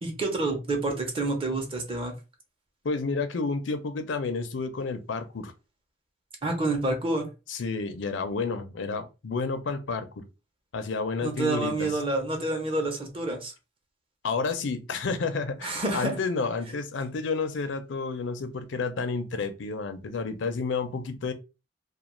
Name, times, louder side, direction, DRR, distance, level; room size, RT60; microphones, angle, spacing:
voice 1, 0.0-2.1 6.4-7.3 11.2-13.5 15.6-16.2, right 2 dB, 30° right, 0.7 m, -28 dB
voice 2, 2.8-5.5 7.5-10.3 10.7-11.9 14.2-21.3, left 4 dB, 90° left, 0.5 m, -30 dB
2.4 x 2.3 x 3.0 m
head